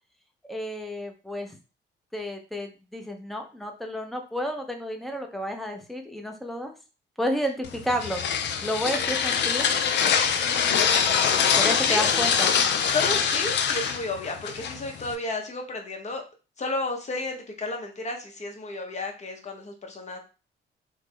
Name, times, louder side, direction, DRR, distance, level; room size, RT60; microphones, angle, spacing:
voice 1, 0.5-1.6 2.1-6.7 7.2-8.2 8.6-9.7 11.5-12.5, equal, ahead, 3 dB, 0.6 m, -31 dB
sound 1, 7.6-15.1, left 7 dB, 60° left, 0.4 m, -24 dB
voice 2, 10.4-12.1 12.9-16.2 16.6-20.2, left 3 dB, 35° left, 2 dB, 0.9 m, -33 dB
3.4 x 2.1 x 3.3 m, 0.33 s
cardioid pair, 90°, 20 cm